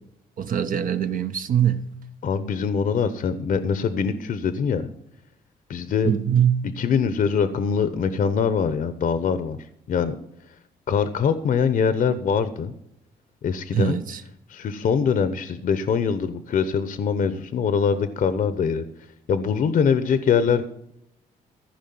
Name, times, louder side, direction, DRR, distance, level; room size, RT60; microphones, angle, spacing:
voice 1, 0.4-1.9 6.0-6.7 13.7-14.2, right 9 dB, 60° right, 0.9 m, -22 dB
voice 2, 2.2-4.9 5.7-6.1 6.8-9.6 9.9-10.2 10.9-12.7 13.4-14.0 14.5-18.9 19.3-20.6, left 6 dB, 60° left, 0.9 m, -23 dB
14.5 x 5.1 x 9.4 m
cardioid pair, 75°, 16 cm